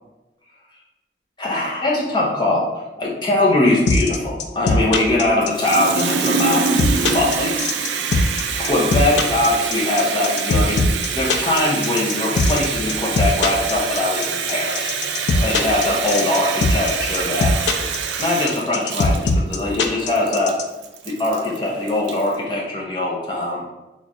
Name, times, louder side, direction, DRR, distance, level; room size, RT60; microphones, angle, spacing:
voice 1, 1.4-2.7 3.0-7.5 8.6-10.8 11.2-15.0 15.4-17.9 18.2-20.6 21.0-23.6, left 2 dB, 25° left, -4 dB, 0.7 m, -21 dB
sound 1, 3.9-20.6, left 3 dB, 75° left, 0.4 m, -19 dB
Water tap faucet, 5.4-22.3, right 6 dB, 75° right, 0.4 m, -25 dB
3.0 x 2.4 x 4.0 m, 1.0 s
head